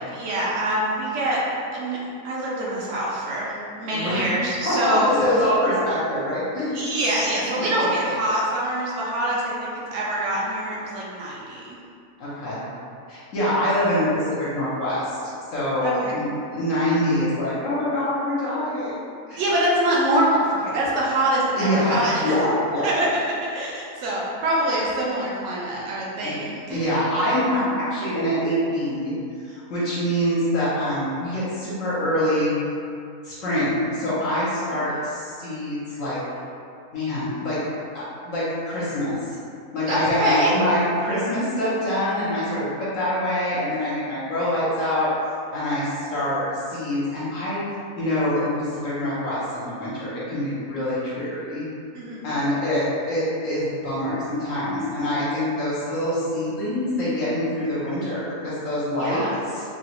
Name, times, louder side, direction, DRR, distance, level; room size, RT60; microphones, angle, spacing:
voice 1, 0.1-1.4 1.7-5.1 6.7-11.8 15.8-16.3 19.4-22.4 22.8-23.1 23.5-26.8 34.7-34.8 39.9-40.5 51.9-52.3 59.0-59.4, right 1 dB, 65° right, -5 dB, 0.9 m, -25 dB
voice 2, 3.9-4.3 4.6-6.8 7.6-7.9 12.2-12.6 13.1-15.2 15.5-16.3 16.5-18.9 19.3-19.5 21.6-22.9 26.2-26.4 26.7-29.1 29.4-32.6 33.2-36.2 36.9-37.6 37.9-39.2 39.7-45.1 45.5-47.6 48.0-51.7 52.2-59.3 59.5-59.6, left 1 dB, 65° left, -10 dB, 1.1 m, -25 dB
3.0 x 2.4 x 2.9 m, 2.4 s
omnidirectional pair, 1.5 m